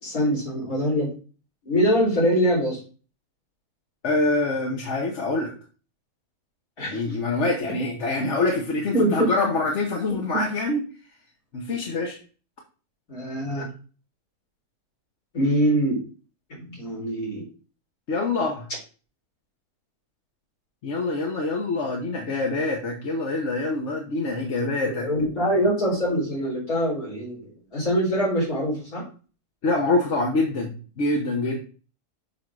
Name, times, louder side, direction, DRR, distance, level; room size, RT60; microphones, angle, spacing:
voice 1, 0.0-1.1 1.7-2.8 6.8-7.0 8.9-9.3 13.1-13.7 15.3-16.0 16.5-17.5 25.0-27.4 27.7-29.0, equal, 80° left, -5 dB, 4.3 m, -23 dB
voice 2, 4.0-5.5 6.9-10.8 11.5-12.2 18.1-18.7 20.8-25.1 29.6-31.6, left 2 dB, 55° left, 1 dB, 1.3 m, -25 dB
6.5 x 3.6 x 6.2 m, 0.37 s
omnidirectional pair, 1.5 m